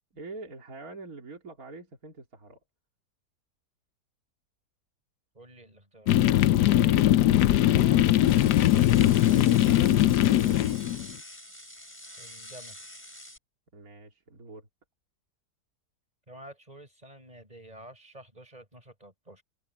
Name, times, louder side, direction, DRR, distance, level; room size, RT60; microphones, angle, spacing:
voice 1, 0.1-2.6 6.5-8.3 8.7-10.7 13.7-14.7, right 3 dB, 60° right, 3.4 m, -45 dB
voice 2, 5.3-6.4 12.2-12.9 16.3-19.4, right 1 dB, 25° right, 6.1 m, -50 dB
Bike downhill, 6.1-11.1, left 13 dB, 90° left, 1.3 m, -21 dB
sound 1, 8.2-13.4, left 1 dB, 5° left, 4.7 m, -46 dB
omnidirectional pair, 1.7 m